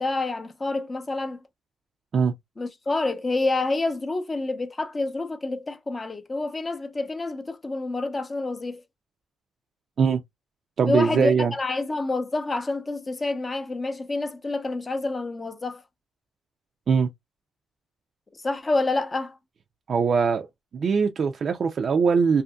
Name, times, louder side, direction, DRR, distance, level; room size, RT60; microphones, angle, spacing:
voice 1, 0.0-1.4 2.6-8.8 10.9-15.8 18.3-19.4, left 2 dB, 25° left, 0.6 m, -28 dB
voice 2, 10.8-11.5 16.9-17.1 19.9-20.5 20.7-22.4, right 6 dB, 50° right, 0.4 m, -21 dB
2.6 x 2.5 x 2.3 m
cardioid pair, 90°, 0 cm